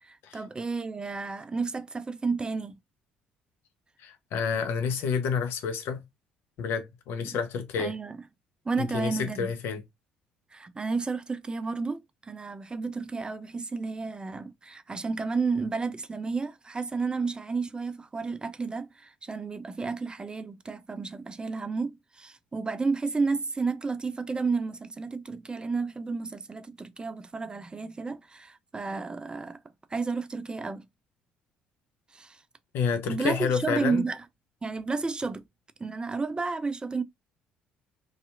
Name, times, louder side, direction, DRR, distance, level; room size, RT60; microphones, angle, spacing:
voice 1, 0.0-2.7 7.2-7.4 7.8-8.2 8.7-9.5 10.5-29.6 29.9-30.8 32.1-32.4 33.1-34.2 34.6-35.4 35.8-37.0, right 4 dB, 20° right, 0.4 m, -32 dB
voice 2, 4.0-6.0 6.6-7.9 8.8-9.8 32.7-34.1, left 6 dB, 65° left, 0.6 m, -29 dB
2.7 x 2.4 x 2.3 m
hypercardioid pair, 55°, 4 cm